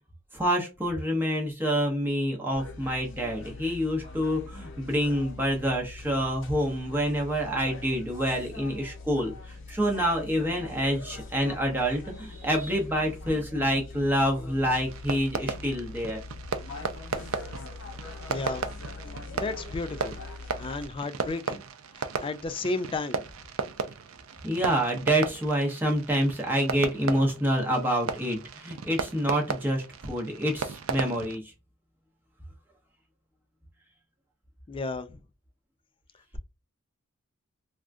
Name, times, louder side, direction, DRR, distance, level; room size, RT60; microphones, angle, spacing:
voice 1, 0.3-16.2 24.4-31.4, equal, 10° right, 0.7 m, -27 dB
sound 1, 2.5-20.9, left 3 dB, 60° left, 0.8 m, -43 dB
Fireworks, 14.9-31.4, right 5 dB, 70° right, 0.4 m, -36 dB
voice 2, 18.3-18.7 19.3-20.2 20.6-21.6 21.9-23.2 34.7-35.2, left 3 dB, 25° left, 0.3 m, -33 dB
3.5 x 2.3 x 2.5 m
head